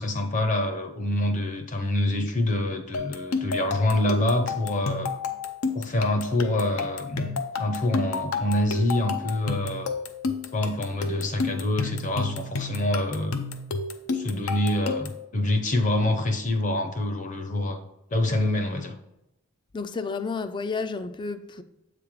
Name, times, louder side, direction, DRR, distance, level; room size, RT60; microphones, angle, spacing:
voice 1, 0.0-5.1 5.7-7.3 7.6-9.9 10.5-13.4 14.1-17.8 18.1-18.9, left 1 dB, 35° left, 0.7 m, -26 dB
sound 1, 2.9-15.2, left 4 dB, 75° left, 0.6 m, -31 dB
voice 2, 19.7-21.6, left 4 dB, 20° left, 0.3 m, -31 dB
7.7 x 3.3 x 3.6 m
head